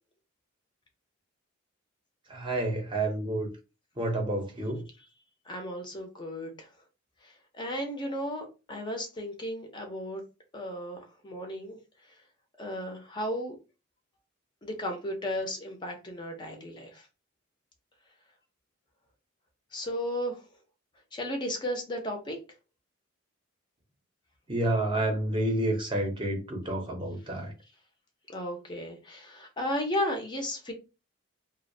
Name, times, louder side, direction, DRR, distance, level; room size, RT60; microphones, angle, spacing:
voice 1, 2.3-3.5 4.0-4.8 24.5-27.5, right 1 dB, 25° right, 0.6 m, -29 dB
voice 2, 5.5-6.7 7.6-10.2 10.5-11.0 11.2-11.8 12.6-13.6 14.6-17.0 19.7-20.4 21.1-22.4 28.3-30.7, left 1 dB, 20° left, 0.4 m, -34 dB
2.3 x 2.1 x 2.6 m
head